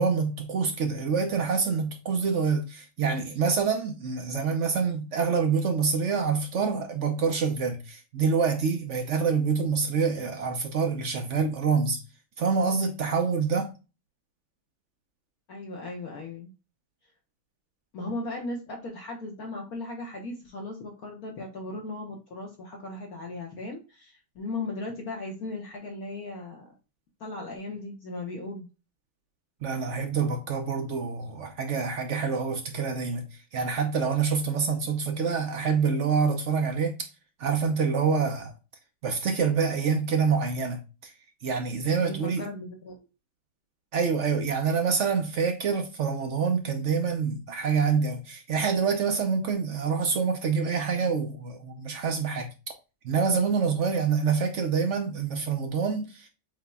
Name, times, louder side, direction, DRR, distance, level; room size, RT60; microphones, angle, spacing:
voice 1, 0.0-12.0 12.4-13.7 29.6-33.2 33.5-37.1 37.4-38.5 39.0-41.1 41.4-42.5 43.9-52.5 53.0-56.3, right 5 dB, 65° right, 0.7 m, -26 dB
voice 2, 15.5-16.5 17.9-26.7 27.2-28.7 42.0-43.1, left 2 dB, 60° left, 1.3 m, -37 dB
7.2 x 2.9 x 2.2 m
omnidirectional pair, 2.0 m